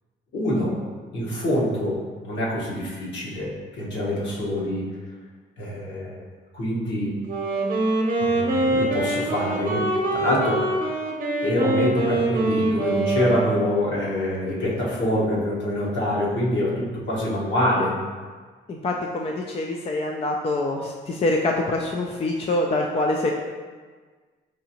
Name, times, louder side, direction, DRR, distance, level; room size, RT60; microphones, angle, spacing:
voice 1, 0.3-0.8 1.1-4.8 5.6-6.2 6.5-7.2 8.2-9.8 10.1-10.6 11.4-18.0, left 1 dB, 65° left, -6 dB, 1.3 m, -25 dB
Wind instrument woodwind instrument, 7.2-14.0, right 2 dB, 45° right, 0.8 m, -24 dB
voice 2, 18.7-23.3, left 2 dB, 30° left, 1 dB, 0.3 m, -25 dB
4.8 x 2.6 x 2.9 m, 1.5 s
cardioid pair, 90°, 20 cm